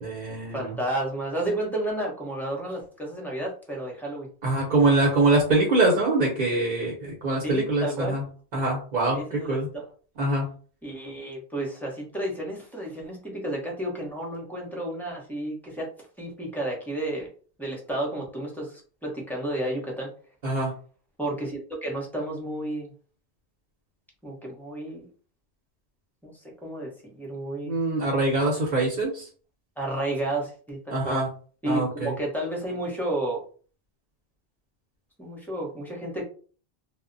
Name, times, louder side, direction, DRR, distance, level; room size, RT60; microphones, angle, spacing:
voice 1, 0.0-0.7 4.4-8.2 8.5-9.7 10.2-10.5 20.4-20.7 27.7-29.3 30.9-31.3 31.6-32.1, right 2 dB, 50° right, -1 dB, 0.9 m, -24 dB
voice 2, 0.5-4.3 7.4-8.2 9.1-9.9 10.8-15.9 16.2-17.3 17.6-20.1 21.2-22.9 24.2-25.0 26.2-26.3 26.6-27.7 29.8-31.2 31.6-33.4 35.2-36.2, right 1 dB, ahead, -1 dB, 0.6 m, -31 dB
2.1 x 2.1 x 3.8 m, 0.41 s
omnidirectional pair, 1.1 m